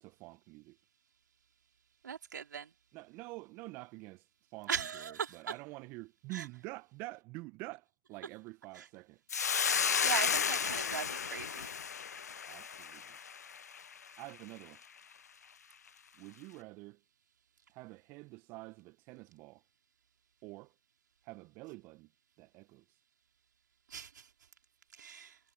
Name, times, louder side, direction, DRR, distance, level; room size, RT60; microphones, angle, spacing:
voice 1, 0.0-0.8 2.9-4.2 4.5-4.7 5.1-9.2 12.5-13.2 14.2-14.8 16.2-17.0 17.7-19.6 20.4-20.7 21.2-22.1 22.4-22.8, right 23 dB, 10° right, 1.6 m, -47 dB
voice 2, 2.0-2.7 4.7-5.5 6.3-6.5 8.7-8.9 9.5-11.8 23.9-24.3 24.9-25.4, right 7 dB, 40° right, 4.2 m, -39 dB
Hiss, 9.3-13.8, left 7 dB, 35° left, 0.6 m, -33 dB
figure-of-eight pair, 150°, 15 cm